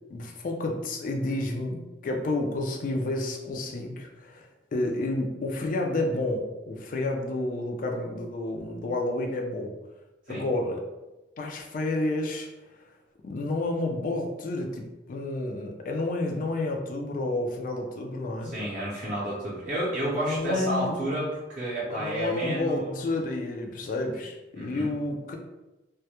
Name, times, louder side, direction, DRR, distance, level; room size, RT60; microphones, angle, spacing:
voice 1, 0.1-9.7 10.3-10.8 11.4-12.5 13.2-18.5 20.2-21.0 21.8-25.4, left 2 dB, 50° left, 2 dB, 0.3 m, -30 dB
voice 2, 18.4-23.0 24.6-24.9, right 1 dB, 45° right, -7 dB, 0.5 m, -31 dB
2.2 x 2.0 x 2.8 m, 1.0 s
head